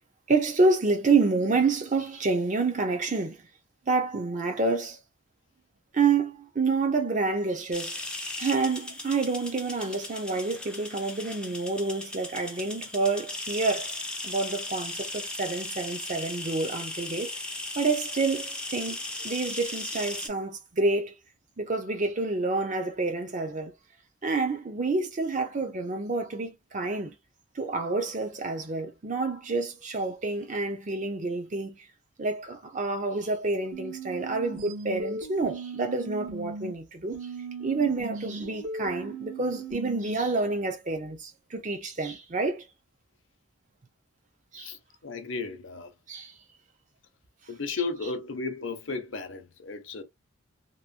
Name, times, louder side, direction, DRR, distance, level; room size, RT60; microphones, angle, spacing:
voice 1, 0.3-3.4 3.9-5.0 5.9-7.9 8.4-13.9 14.2-17.3 17.8-19.0 19.2-21.1 21.6-23.7 24.2-27.1 27.6-31.8 32.2-37.2 37.6-42.6 44.5-44.7 46.1-46.3, right 3 dB, 35° right, 0.6 m, -28 dB
sound 1, 7.7-20.3, left 2 dB, 5° left, 0.4 m, -37 dB
sound 2, 33.7-36.7 37.1-40.2, right 3 dB, 65° right, 1.1 m, -38 dB
voice 2, 44.6-45.9 47.5-50.0, left 4 dB, 65° left, 0.7 m, -34 dB
2.9 x 2.1 x 2.5 m
head